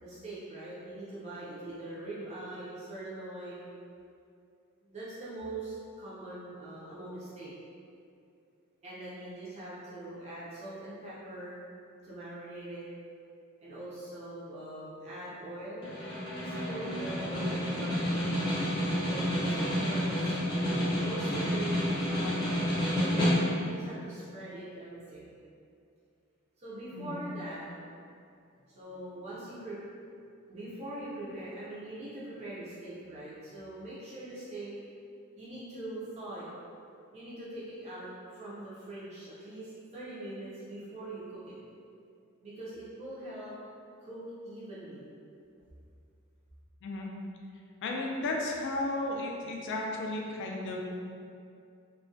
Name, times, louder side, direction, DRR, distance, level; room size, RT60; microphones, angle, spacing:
voice 1, 0.0-3.7 4.8-7.5 8.8-11.6 12.0-12.9 13.6-15.9 16.4-18.2 18.9-23.3 23.6-25.4 26.6-27.6 28.7-29.8 30.5-34.7 35.3-36.5 37.1-41.6 42.4-43.5 44.0-45.0, right 1 dB, 30° right, -10 dB, 0.5 m, -42 dB
Snare drum, 15.8-23.8, equal, 20° left, 0.6 m, -30 dB
voice 2, 47.8-50.8, left 2 dB, 55° left, 0 dB, 0.3 m, -34 dB
2.3 x 2.1 x 2.5 m, 2.4 s
head